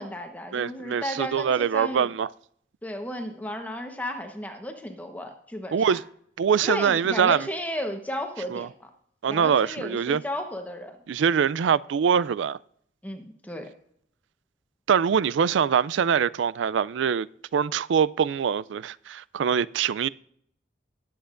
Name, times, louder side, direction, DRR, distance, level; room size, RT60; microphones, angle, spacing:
voice 1, 0.0-2.1 2.8-6.0 6.6-8.9 9.3-11.0 13.0-13.7, left 1 dB, 10° left, 1.0 m, -34 dB
voice 2, 0.5-2.3 5.7-6.0 6.4-7.5 8.5-8.7 9.2-10.2 11.1-12.6 14.9-17.3 17.5-20.1, right 7 dB, 85° right, 0.4 m, -23 dB
19.5 x 8.0 x 2.5 m
head